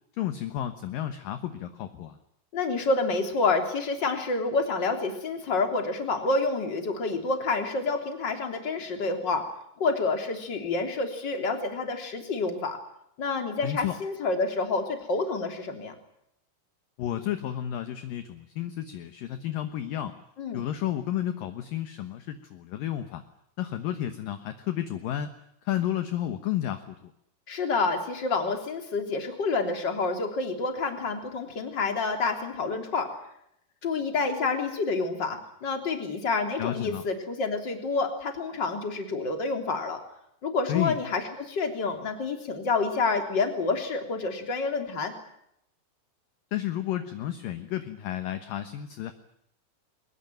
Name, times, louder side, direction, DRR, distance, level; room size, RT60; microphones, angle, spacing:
voice 1, 0.2-2.2 13.6-14.0 17.0-20.1 20.5-23.2 23.6-25.4 25.6-27.1 36.6-37.0 40.7-41.0 46.5-49.1, left 11 dB, 65° left, 9 dB, 2.6 m, -31 dB
voice 2, 2.5-9.5 9.8-12.8 13.2-16.0 20.4-20.6 27.5-33.1 33.8-40.0 40.4-45.1, left 3 dB, 30° left, 5 dB, 3.4 m, -28 dB
22.5 x 21.5 x 9.2 m, 0.76 s
omnidirectional pair, 4.9 m